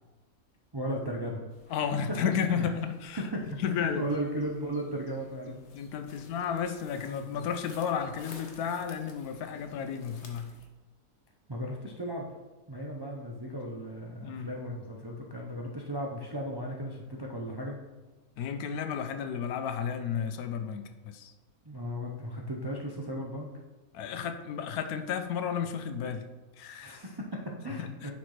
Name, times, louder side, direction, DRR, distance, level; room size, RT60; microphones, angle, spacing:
voice 1, 0.7-1.8 2.6-2.7 3.2-5.6 11.5-12.3 12.7-17.8 21.6-23.5 26.8-28.1, right 1 dB, 40° right, -1 dB, 0.3 m, -36 dB
sound 1, 1.5-10.7, left 3 dB, 55° left, 1.1 m, -55 dB
voice 2, 1.7-3.2 3.6-4.1 5.5-10.5 14.2-14.5 18.4-21.3 23.9-26.3 26.6-27.0 27.8-28.1, left 7 dB, 90° left, 8 dB, 1.1 m, -33 dB
10.0 x 4.2 x 3.2 m, 1.2 s
omnidirectional pair, 1.5 m